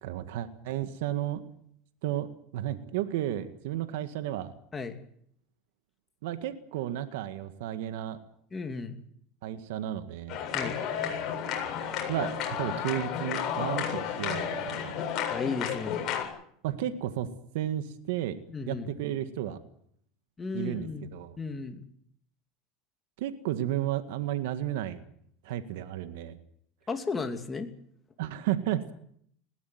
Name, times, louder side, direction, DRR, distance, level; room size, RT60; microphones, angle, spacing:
voice 1, 0.0-1.4 2.0-4.5 6.2-8.2 9.4-10.4 12.1-12.3 12.6-15.0 16.6-17.3 17.5-18.4 18.7-19.6 20.5-21.4 23.2-25.0 25.4-26.4 28.2-28.9, right 12 dB, 80° right, 10 dB, 1.8 m, -33 dB
voice 2, 8.5-9.0 10.5-10.8 15.3-16.0 18.5-18.9 20.4-21.1 21.4-21.8 26.9-27.7, left 4 dB, 20° left, 6 dB, 2.9 m, -34 dB
sound 1, 10.3-16.2, left 8 dB, 45° left, 7.8 m, -32 dB
21.0 x 16.5 x 9.4 m, 0.66 s
supercardioid pair, 120°, 0 cm